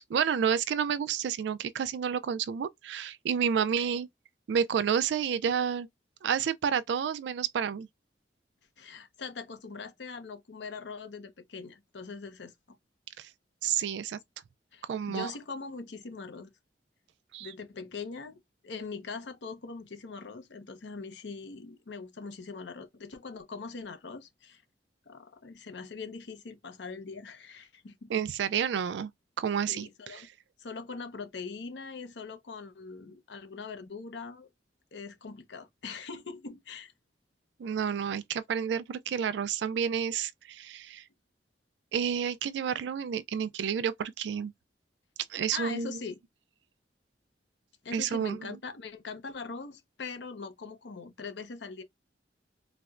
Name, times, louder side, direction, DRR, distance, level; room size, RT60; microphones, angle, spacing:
voice 1, 0.0-4.1 4.5-5.9 6.2-7.9 13.2-13.3 13.6-14.2 14.8-15.3 17.3-17.5 28.1-29.1 29.4-30.3 37.6-41.0 41.9-44.5 45.3-46.0 47.9-48.6, right 7 dB, 70° right, 0.3 m, -30 dB
voice 2, 8.8-12.8 14.7-16.5 17.4-24.6 25.1-28.1 29.7-30.3 30.6-34.5 34.9-36.9 45.5-46.2 47.8-51.8, left 4 dB, 75° left, 0.7 m, -42 dB
4.1 x 2.1 x 2.3 m
head